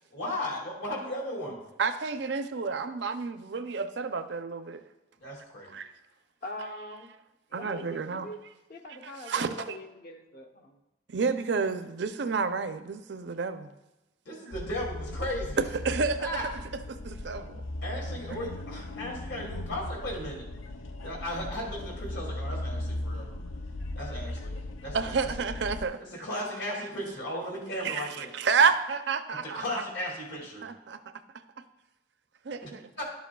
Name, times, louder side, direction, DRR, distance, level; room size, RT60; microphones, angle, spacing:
voice 1, 0.1-1.6 5.2-5.7 14.3-15.6 16.2-16.5 17.8-20.5 21.0-23.3 23.9-25.3 26.0-28.3 29.5-30.7 32.6-32.7 33.0-33.1, left 1 dB, 70° left, -1 dB, 2.4 m, -36 dB
voice 2, 1.8-4.8 5.7-5.9 7.5-8.3 9.0-9.8 11.1-13.7 15.8-16.3 16.9-17.6 18.3-18.4 24.9-26.0 26.7-26.9 27.8-29.8 30.6-31.0 32.4-32.9, right 5 dB, 65° right, 9 dB, 0.5 m, -30 dB
voice 3, 6.4-7.1 7.5-8.4 8.7-10.8, left 1 dB, 50° left, 4 dB, 0.8 m, -43 dB
sound 1, 14.5-25.9, left 1 dB, 90° left, 0.6 m, -37 dB
11.5 x 7.2 x 2.3 m, 0.99 s
head